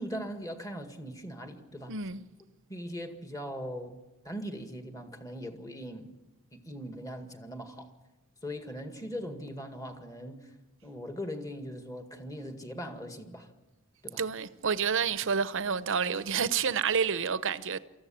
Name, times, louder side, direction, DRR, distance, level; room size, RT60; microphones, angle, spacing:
voice 1, 0.0-1.9 2.7-4.0 4.2-6.1 6.5-7.9 8.4-10.5 10.8-13.5 14.0-14.2, equal, 15° left, 2.0 m, -40 dB
voice 2, 1.9-2.2 14.2-17.8, right 6 dB, 60° right, 0.8 m, -29 dB
24.5 x 14.5 x 8.7 m
head